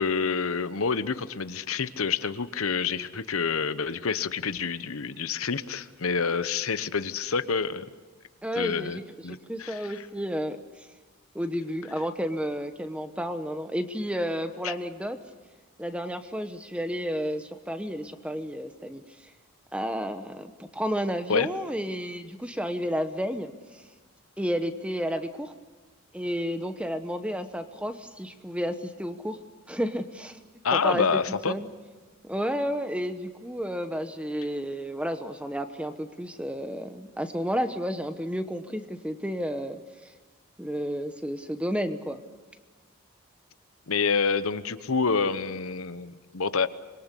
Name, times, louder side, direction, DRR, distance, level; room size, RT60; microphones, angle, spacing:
voice 1, 0.0-7.9 8.6-10.1 14.6-14.7 21.3-21.5 30.6-31.6 43.9-46.7, left 5 dB, 80° left, 13 dB, 0.9 m, -28 dB
voice 2, 8.4-9.0 9.3-10.9 11.3-15.2 15.8-19.3 19.7-23.8 24.4-25.5 26.1-29.4 29.7-30.4 30.7-31.1 31.5-31.7 32.2-40.1 40.6-42.2, equal, 5° right, 9 dB, 1.0 m, -31 dB
25.5 x 22.0 x 8.3 m, 1.3 s
head